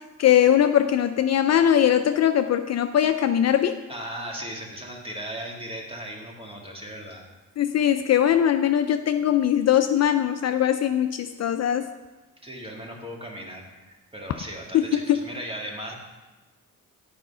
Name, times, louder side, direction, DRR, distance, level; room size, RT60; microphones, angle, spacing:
voice 1, 0.2-3.8 7.6-11.9 14.9-15.2, left 10 dB, 50° left, 8 dB, 0.4 m, -21 dB
voice 2, 3.9-7.2 12.4-15.9, equal, 15° right, -1 dB, 1.9 m, -37 dB
9.1 x 5.0 x 5.5 m, 1.2 s
cardioid pair, 95°, 34 cm